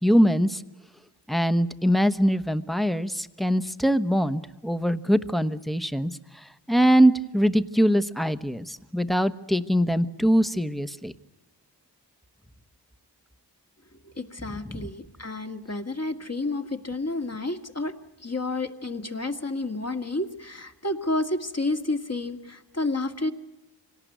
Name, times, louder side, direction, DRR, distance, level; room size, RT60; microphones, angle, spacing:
voice 1, 0.0-0.6 1.3-6.1 6.7-11.1 14.6-14.9, equal, ahead, 10 dB, 1.1 m, -22 dB
voice 2, 14.2-17.9 18.2-23.3, left 2 dB, 35° left, 5 dB, 2.1 m, -30 dB
25.5 x 18.0 x 9.3 m, 1.0 s
cardioid pair, 45°, 43 cm